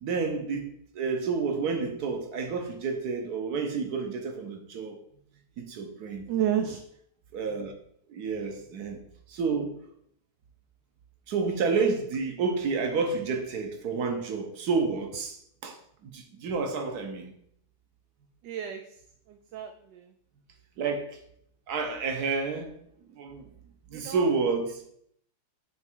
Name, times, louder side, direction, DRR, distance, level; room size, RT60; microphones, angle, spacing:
voice 1, 0.0-5.0 5.6-6.3 7.3-7.7 8.1-9.0 9.3-9.8 11.3-17.3 20.8-21.2 21.7-22.8 23.2-23.5 23.9-24.8, right 4 dB, 60° right, 1.4 m, -30 dB
voice 2, 6.3-6.8 18.4-19.0 19.3-20.1 23.9-24.3, right 10 dB, 75° right, 1.1 m, -31 dB
9.6 x 3.3 x 4.5 m
omnidirectional pair, 2.1 m